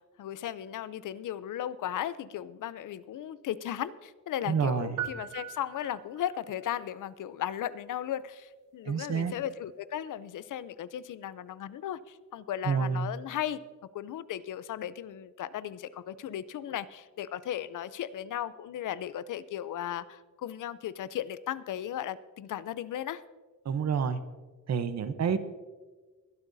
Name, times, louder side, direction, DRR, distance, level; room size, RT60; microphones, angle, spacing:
voice 1, 0.0-13.6 13.9-23.2, left 11 dB, 80° left, 16 dB, 0.6 m, -36 dB
voice 2, 4.5-5.0 8.8-9.3 12.6-13.1 23.6-24.2 24.7-25.4, right 6 dB, 55° right, 11 dB, 0.9 m, -28 dB
sound 1, 5.0-6.4, right 11 dB, 85° right, 0.6 m, -39 dB
22.0 x 12.0 x 2.7 m, 1.3 s
wide cardioid pair, 145°, 31 cm